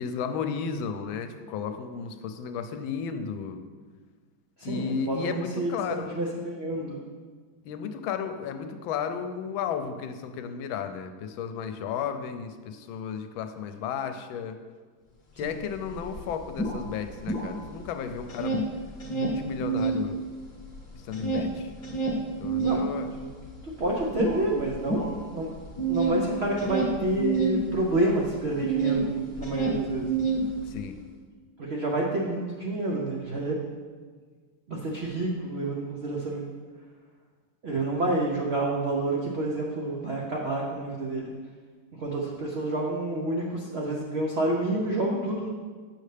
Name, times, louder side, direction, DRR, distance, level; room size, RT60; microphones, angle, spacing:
voice 1, 0.0-3.6 4.6-6.1 7.6-14.6 15.4-18.6 19.1-20.2 20.9-21.7 22.4-23.1 30.6-31.0, left 6 dB, 85° left, 8 dB, 1.3 m, -33 dB
voice 2, 4.6-7.0 15.4-15.5 22.6-22.8 23.2-23.3 23.8-25.5 25.9-30.1 31.6-33.6 34.7-36.4 37.6-41.2 42.0-45.5, right 2 dB, 85° right, -2 dB, 0.5 m, -29 dB
sound 1, 15.5-15.6 15.9-17.9 18.2-20.0 20.4-29.0 29.3-30.9, right 4 dB, 35° left, 0.8 m, -28 dB
6.8 x 6.5 x 3.3 m, 1.5 s
omnidirectional pair, 2.1 m